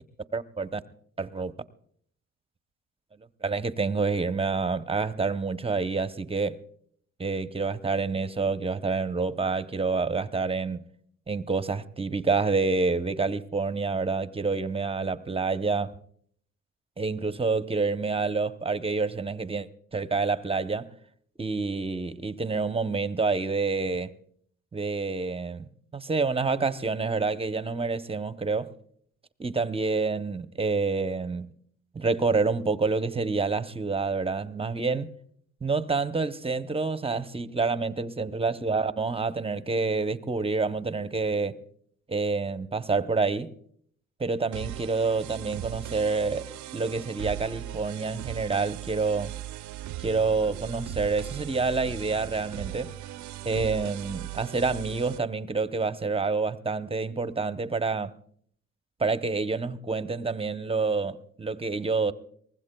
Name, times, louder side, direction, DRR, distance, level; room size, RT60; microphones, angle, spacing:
voice 1, 0.3-0.8 1.2-1.5 3.4-6.6 7.2-10.8 11.3-16.0 17.0-20.9 21.4-24.1 24.7-28.7 29.4-31.5 31.9-35.1 35.6-41.6 42.1-43.5 44.2-49.3 50.0-52.9 53.4-58.1 59.0-62.1, right 4 dB, 20° right, 0.7 m, -28 dB
sound 1, 44.5-55.2, right 14 dB, 70° right, 0.5 m, -38 dB
23.5 x 20.0 x 2.2 m
cardioid pair, 90°, 30 cm